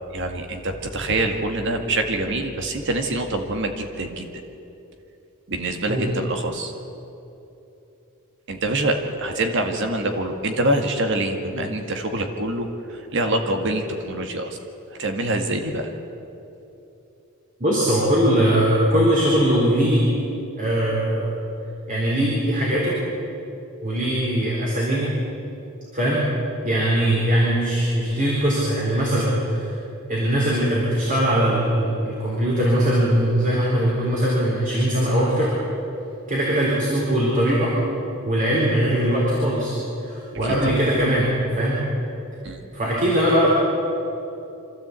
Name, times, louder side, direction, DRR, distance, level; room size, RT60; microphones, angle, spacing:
voice 1, 0.1-4.3 5.5-6.7 8.5-14.6 14.9-15.9 40.4-40.5 42.4-42.6, right 1 dB, 60° right, 5 dB, 1.9 m, -25 dB
voice 2, 17.6-20.1 20.6-21.3 21.9-22.9 23.8-25.1 25.9-26.3 26.6-29.7 30.1-35.5 36.3-37.7 38.2-39.7 40.0-41.8 42.7-43.5, right 1 dB, 40° right, -5 dB, 4.0 m, -21 dB
25.5 x 13.5 x 8.3 m, 2.9 s
head